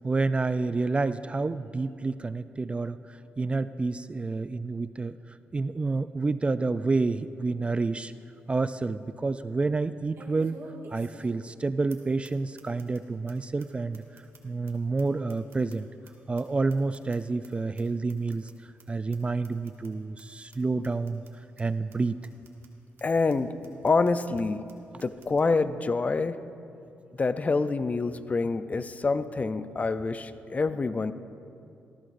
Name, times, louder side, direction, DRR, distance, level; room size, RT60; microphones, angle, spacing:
voice 1, 0.0-8.1 8.5-10.6 10.9-15.9 16.3-18.5 18.9-21.2 21.6-22.2, right 3 dB, 25° right, 13 dB, 0.3 m, -29 dB
sound 1, 7.8-7.9 8.4-8.5 10.1-11.6 11.9-12.0 12.2-12.3 12.6-13.0 13.3-13.4 13.6-13.7 13.9-16.1 16.4-17.5 17.8-17.9 18.1-18.5 18.8-18.9 19.1-19.2 19.4-19.9 20.2-20.3 20.5-20.6 20.8-21.3 21.6-21.7 21.9-22.0 22.2-22.7 23.0-23.1 23.3-23.4 23.6-24.1 24.4-24.5 24.7-24.8 25.0-25.4, right 3 dB, 65° right, 1.9 m, -50 dB
voice 2, 23.0-23.5 23.8-24.6 25.0-26.4 27.2-31.1, left 3 dB, 30° left, 12 dB, 0.5 m, -26 dB
19.0 x 14.5 x 2.6 m, 2.6 s
cardioid pair, 85°, 5 cm